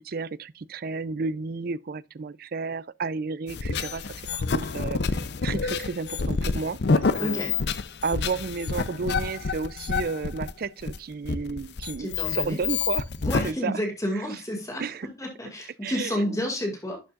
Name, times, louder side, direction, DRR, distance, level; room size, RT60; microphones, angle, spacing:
voice 1, 0.7-4.0 4.5-5.0 5.4-6.8 7.2-7.4 8.0-13.0 13.4-13.8 14.1-14.2 14.8-15.1 15.8-16.4, right 4 dB, 55° right, 0.4 m, -32 dB
sound 1, 3.5-13.5, left 4 dB, 65° left, 0.6 m, -28 dB
voice 2, 7.2-7.5 12.0-12.6 13.2-17.0, equal, 20° left, 2.2 m, -30 dB
11.5 x 7.2 x 2.4 m
head